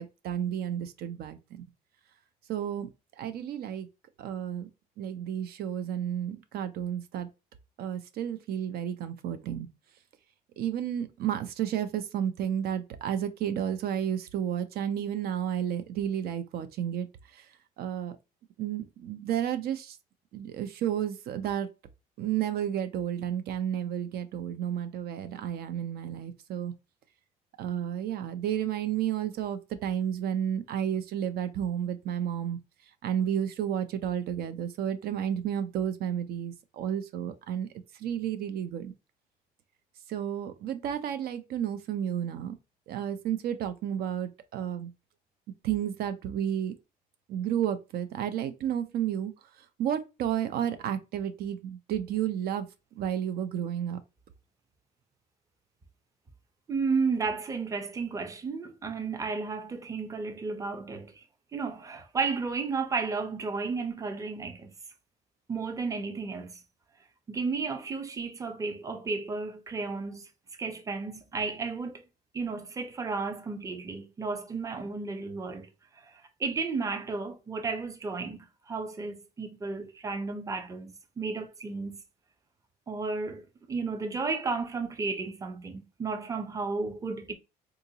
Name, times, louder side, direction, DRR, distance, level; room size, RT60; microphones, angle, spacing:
voice 1, 0.0-1.6 2.5-2.9 3.2-3.9 4.2-4.7 5.0-7.3 7.8-9.7 10.6-18.2 18.6-20.0 20.3-21.7 22.2-26.7 27.6-32.6 33.0-38.9 40.1-42.6 42.9-44.9 45.6-46.8 47.3-49.3 49.8-52.7 53.0-54.0, right 9 dB, 65° right, 0.5 m, -32 dB
voice 2, 56.7-61.3 61.5-64.7 65.5-66.5 67.3-70.3 70.6-72.0 72.3-75.7 75.9-78.4 78.7-82.0 82.9-87.3, right 4 dB, 20° right, 0.6 m, -33 dB
3.7 x 2.5 x 2.7 m
cardioid pair, 110°, 17 cm